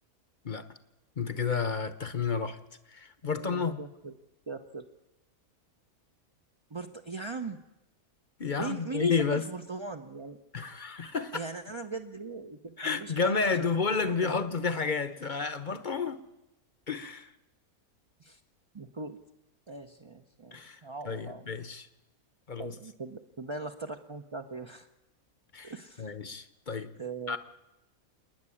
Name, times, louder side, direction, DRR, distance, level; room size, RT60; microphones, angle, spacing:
voice 1, 1.2-2.6 2.9-3.8 8.4-9.4 10.5-11.4 12.8-16.2 16.9-17.3 20.5-20.8 21.0-21.9 22.5-22.7 25.5-25.7 26.0-26.9 27.3-27.4, left 5 dB, 40° left, 0.9 m, -31 dB
voice 2, 3.2-4.1 4.5-4.8 6.7-7.6 8.6-10.4 11.3-13.7 14.0-14.4 18.2-18.4 18.7-19.2 19.7-21.5 22.6-24.9 25.6-26.2 27.0-27.4, right 3 dB, 30° right, 0.6 m, -40 dB
28.0 x 9.7 x 9.9 m
omnidirectional pair, 1.6 m